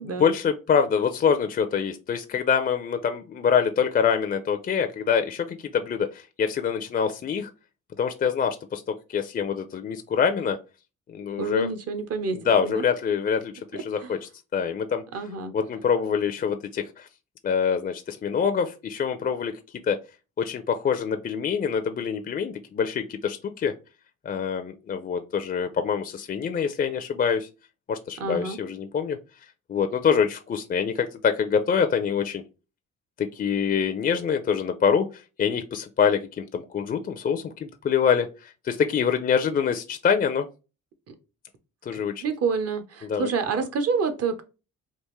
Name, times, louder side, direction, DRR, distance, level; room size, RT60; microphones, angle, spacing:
voice 1, 0.0-7.5 8.0-8.8 9.1-10.6 11.1-11.7 12.4-14.2 14.5-15.0 15.5-17.1 17.4-19.5 19.9-20.0 20.4-23.7 24.3-27.5 27.9-29.2 29.7-32.4 33.2-35.1 35.4-40.5 41.9-42.2 43.1-43.3, left 7 dB, 30° left, 7 dB, 0.4 m, -25 dB
voice 2, 11.4-12.8 13.7-14.1 15.1-15.5 28.2-28.6 41.1-41.2 41.9-44.4, right 5 dB, 55° right, 9 dB, 0.7 m, -28 dB
3.5 x 2.5 x 3.0 m, 0.31 s
cardioid pair, 90°, 30 cm